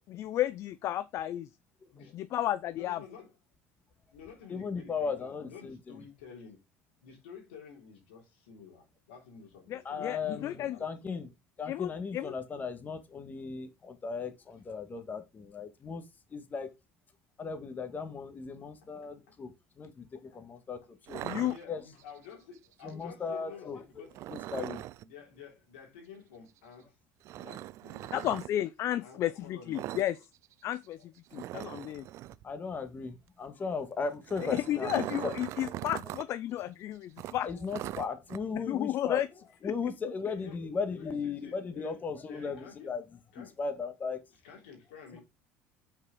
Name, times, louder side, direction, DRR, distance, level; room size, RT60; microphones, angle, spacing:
voice 1, 0.1-1.5 2.1-3.0 9.7-10.8 11.7-12.3 21.2-21.5 28.1-30.2 30.6-32.1 34.4-37.5 38.7-39.3 39.6-39.7, left 12 dB, 55° left, 0.5 m, -33 dB
voice 2, 2.7-3.3 4.1-6.6 7.0-11.1 18.6-19.4 20.3-20.9 21.3-24.7 25.0-27.0 27.3-28.3 29.0-30.0 31.0-31.1 40.4-40.6 40.9-42.9 43.3-43.6 44.4-45.2, left 6 dB, 90° left, 3.3 m, -51 dB
voice 3, 4.5-6.0 9.8-11.3 11.6-16.0 16.3-16.7 17.4-19.5 19.8-21.2 21.7-21.8 22.8-23.8 24.3-24.8 32.4-35.0 35.2-35.3 37.4-39.2 39.6-43.0 43.4-44.2 45.1-45.2, left 5 dB, 30° left, 1.6 m, -37 dB
sound 1, 21.1-22.1 24.1-25.0 27.2-28.5 29.7-30.1 30.3-30.5 30.8-30.9 31.3-32.4 34.0-36.3 36.6-36.7 37.2-38.4, right 15 dB, 55° right, 0.3 m, -40 dB
6.0 x 4.7 x 4.8 m
supercardioid pair, 90°, 6 cm